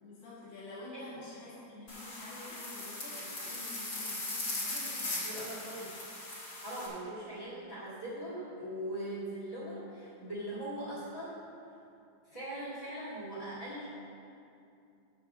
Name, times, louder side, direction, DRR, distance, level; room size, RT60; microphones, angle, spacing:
voice 1, 0.0-5.9 7.1-7.2, left 2 dB, 90° left, -10 dB, 3.4 m, -49 dB
sound 1, 1.9-6.9, left 2 dB, 35° left, 2.2 m, -39 dB
voice 2, 5.2-6.0 6.6-11.4 12.2-13.9, right 1 dB, 15° left, -9 dB, 1.3 m, -40 dB
7.3 x 6.3 x 7.1 m, 2.6 s
omnidirectional pair, 3.4 m